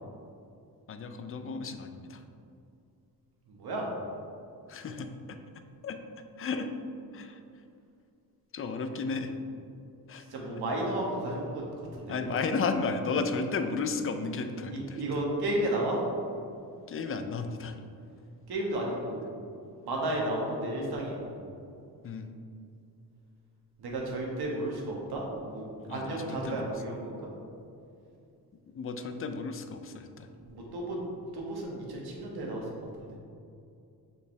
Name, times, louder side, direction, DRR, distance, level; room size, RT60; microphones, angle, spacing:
voice 1, 0.9-2.2 4.7-5.1 5.8-6.0 6.4-6.7 7.1-7.4 8.5-9.3 10.1-10.2 12.1-15.2 16.9-17.8 20.0-20.2 22.0-22.3 25.9-26.8 28.7-30.3, left 4 dB, 35° left, 7 dB, 0.4 m, -33 dB
voice 2, 3.5-3.9 10.3-11.6 12.0-12.3 14.7-16.0 18.5-19.2 19.8-21.3 23.8-27.1 30.4-31.0 31.3-33.2, right 1 dB, 75° right, -2 dB, 1.5 m, -33 dB
6.6 x 5.5 x 3.3 m, 2.5 s
wide cardioid pair, 145°, 38 cm